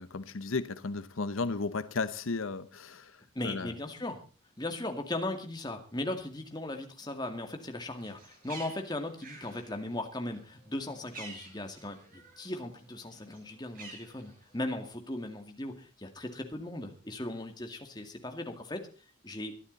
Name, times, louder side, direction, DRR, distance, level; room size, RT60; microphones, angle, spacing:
voice 1, 0.0-3.2 3.4-3.7, left 3 dB, 75° left, 0.8 m, -34 dB
voice 2, 3.3-4.2 4.6-18.9 19.2-19.6, left 1 dB, 20° left, 2.2 m, -38 dB
Bird, 7.9-12.5 12.8-14.7, right 3 dB, 40° right, 7.0 m, -50 dB
22.5 x 11.5 x 4.1 m
head